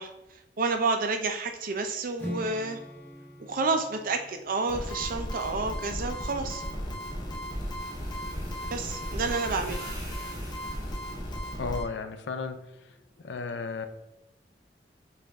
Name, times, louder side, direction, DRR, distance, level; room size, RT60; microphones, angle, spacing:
voice 1, 0.0-2.8 3.4-6.6 8.7-9.8, right 3 dB, 50° right, 6 dB, 0.5 m, -30 dB
Strum, 2.2-6.3, equal, 10° left, 1.1 m, -43 dB
sound 1, 4.7-11.8, equal, 25° left, 0.8 m, -35 dB
sound 2, 6.6-11.5, right 1 dB, 20° right, 0.9 m, -48 dB
voice 2, 11.6-13.9, left 4 dB, 75° left, 8 dB, 0.5 m, -35 dB
5.0 x 2.5 x 3.5 m, 0.90 s
head